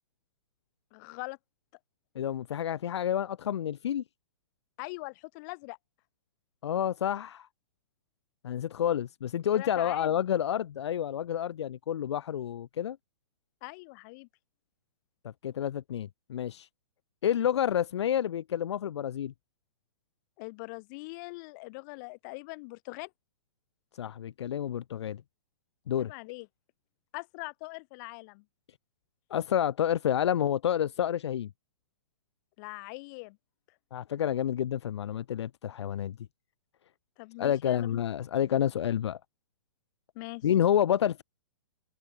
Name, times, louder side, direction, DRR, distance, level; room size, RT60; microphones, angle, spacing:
voice 1, 0.9-1.4 4.8-5.8 9.5-10.1 13.6-14.3 20.4-23.1 26.0-26.5 27.1-28.4 32.6-33.4 37.2-38.0 40.1-40.5, left 28 dB, 40° left, 7.4 m, -42 dB
voice 2, 2.1-4.0 6.6-7.5 8.4-13.0 15.4-16.7 17.2-19.3 23.9-25.2 25.9-26.1 29.3-31.5 33.9-36.2 37.4-39.2 40.4-41.2, left 10 dB, 70° left, 1.2 m, -29 dB
hypercardioid pair, 135°, 15 cm